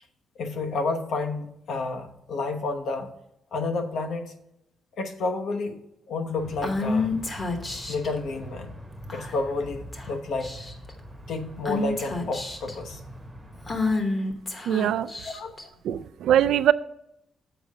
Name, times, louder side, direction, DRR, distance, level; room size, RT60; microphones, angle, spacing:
voice 1, 0.4-3.1 3.5-4.3 5.0-5.8 6.1-7.2 7.9-8.8 9.1-10.5 11.3-13.0 15.2-15.5, left 3 dB, 65° left, 5 dB, 0.9 m, -30 dB
sound 1, 6.4-14.0, equal, 5° right, 0.9 m, -44 dB
Female speech woman speaking / Whispering, 6.6-8.1 9.1-9.5 9.9-10.1 10.4-10.9 11.7-12.7 13.7-15.6, left 3 dB, 25° left, 1.0 m, -29 dB
voice 2, 14.7-15.1 15.9-16.7, right 10 dB, 90° right, 14 dB, 0.3 m, -21 dB
6.9 x 4.7 x 6.4 m, 0.82 s
wide cardioid pair, 175°, 0 cm